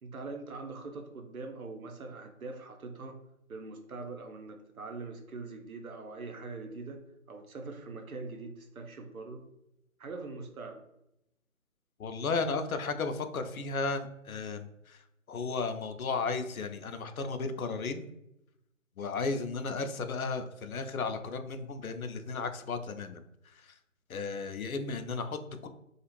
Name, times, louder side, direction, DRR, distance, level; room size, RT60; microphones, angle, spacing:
voice 1, 0.0-3.2 3.5-7.0 7.3-9.4 10.0-10.8, right 3 dB, 85° right, 5 dB, 0.7 m, -42 dB
voice 2, 12.0-15.0 15.3-18.0 19.0-23.2 23.6-23.7 24.1-25.7, left 4 dB, 90° left, 8 dB, 0.6 m, -34 dB
2.5 x 2.3 x 3.0 m, 0.83 s
figure-of-eight pair, 165°, 41 cm